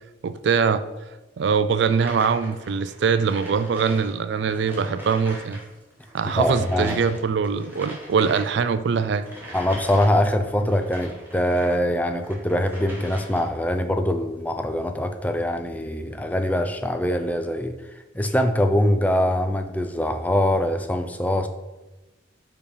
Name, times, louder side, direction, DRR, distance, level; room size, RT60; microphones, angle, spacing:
voice 1, 0.2-0.8 1.4-5.6 6.1-9.3, right 5 dB, 60° right, 12 dB, 0.3 m, -22 dB
sound 1, 1.8-5.6 5.9-11.8 12.2-13.6, right 1 dB, 10° right, 1.4 m, -41 dB
voice 2, 6.4-7.0 9.5-17.7 18.1-21.5, left 1 dB, 10° left, 6 dB, 0.4 m, -23 dB
5.2 x 4.9 x 4.9 m, 1.1 s
head